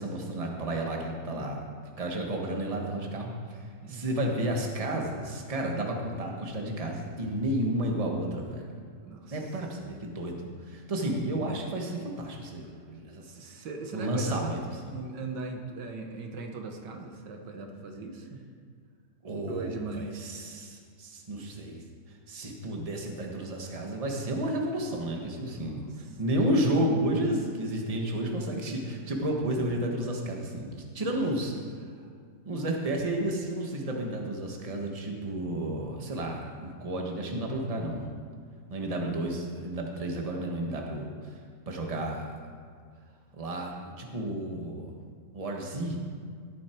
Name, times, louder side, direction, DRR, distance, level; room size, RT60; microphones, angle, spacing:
voice 1, 0.0-1.6 2.0-3.6 3.9-8.7 9.3-13.2 13.9-14.6 19.2-21.8 22.3-25.8 26.2-31.5 32.4-38.1 38.7-41.3 41.7-42.4 43.3-44.9 45.3-46.0, right 1 dB, 20° right, 1 dB, 1.4 m, -31 dB
voice 2, 9.0-9.6 13.2-18.4 19.5-20.3 25.5-26.6 31.1-31.2 31.5-31.6, right 3 dB, 75° right, 3 dB, 1.8 m, -40 dB
18.0 x 8.5 x 4.5 m, 2.1 s
omnidirectional pair, 1.9 m